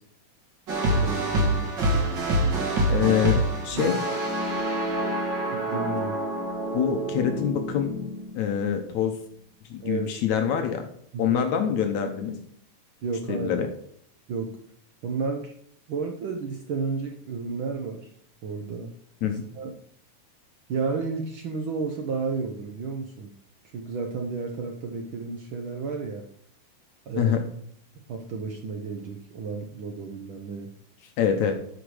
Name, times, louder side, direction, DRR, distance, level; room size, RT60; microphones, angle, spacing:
sound 1, 0.7-8.8, right 1 dB, 40° right, 2.2 m, -26 dB
voice 1, 0.9-1.8 3.0-3.1 3.7-3.9 5.5-6.2 9.8-10.1 11.1-11.4 13.0-13.5 14.3-14.6 15.0-15.5 15.9-18.1 18.4-18.9 19.2-19.7 20.7-23.3 23.7-26.3 27.1-27.4 28.1-30.7, right 4 dB, 70° right, 3 dB, 1.2 m, -32 dB
voice 2, 2.9-3.4 3.6-4.0 6.7-7.9 8.4-9.2 9.7-10.8 11.2-12.4 13.3-13.7 19.2-19.4 27.2-27.4 31.2-31.5, left 8 dB, 75° left, 5 dB, 2.2 m, -25 dB
12.5 x 5.2 x 4.9 m, 0.63 s
omnidirectional pair, 3.5 m